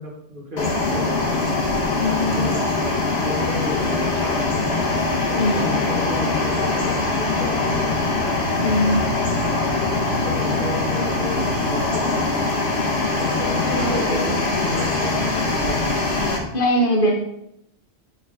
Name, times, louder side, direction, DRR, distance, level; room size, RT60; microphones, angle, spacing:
voice 1, 0.0-1.5 2.1-2.6 3.2-4.8 5.2-8.1 10.1-12.1 13.1-16.2, left 1 dB, 50° right, -2 dB, 1.8 m, -32 dB
sound 1, 0.6-16.4, left 3 dB, 70° left, 1.5 m, -22 dB
voice 2, 2.0-2.5 5.4-5.7 8.6-9.2 13.6-14.4 16.5-17.1, equal, 55° left, 0 dB, 1.3 m, -22 dB
9.2 x 4.0 x 3.7 m, 0.78 s
omnidirectional pair, 1.1 m